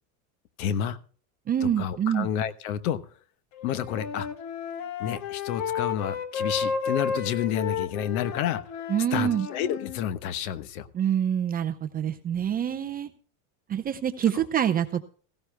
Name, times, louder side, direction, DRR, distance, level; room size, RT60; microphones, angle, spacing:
voice 1, 0.6-1.0 1.6-3.0 3.6-4.3 5.0-8.6 9.1-10.9, left 9 dB, 85° left, 14 dB, 1.2 m, -30 dB
voice 2, 1.5-2.3 8.9-9.5 10.9-13.1 13.7-15.0, right 9 dB, 20° right, 6 dB, 0.6 m, -26 dB
Wind instrument woodwind instrument, 3.6-10.0, left 6 dB, 45° left, 1.2 m, -32 dB
17.0 x 15.5 x 2.2 m, 0.43 s
supercardioid pair, 150°, 42 cm